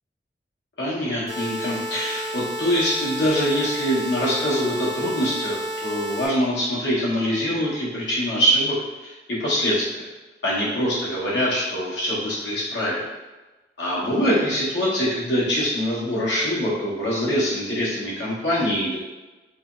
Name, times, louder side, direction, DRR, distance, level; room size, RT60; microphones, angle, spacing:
voice 1, 0.8-8.8 9.0-10.1 10.4-13.1 13.8-19.0, equal, 85° left, -7 dB, 1.1 m, -24 dB
sound 1, 1.3-6.3, equal, 60° left, 1.4 m, -31 dB
3.2 x 2.9 x 2.5 m, 1.1 s
head